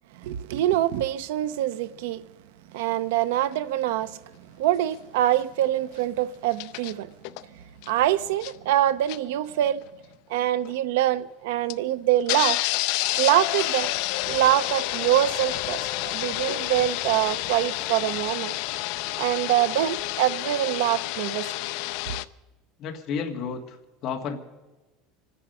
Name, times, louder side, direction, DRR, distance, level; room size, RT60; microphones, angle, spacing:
voice 1, 0.1-2.2 2.7-4.2 4.6-7.1 7.9-9.8 10.3-12.6 13.2-13.9 14.2-18.5 19.2-21.5, right 13 dB, 85° right, 0.7 m, -24 dB
sound 1, 3.5-3.6 6.5-6.9 7.2-7.4 7.8-7.9 8.3-8.7 9.1-9.2 9.8-9.9 10.6-10.7 11.7-11.8 12.3-22.2, left 18 dB, 55° left, 0.5 m, -29 dB
voice 2, 22.8-24.4, left 6 dB, 35° left, 1.8 m, -32 dB
25.5 x 10.0 x 5.5 m
cardioid pair, 175°, 0 cm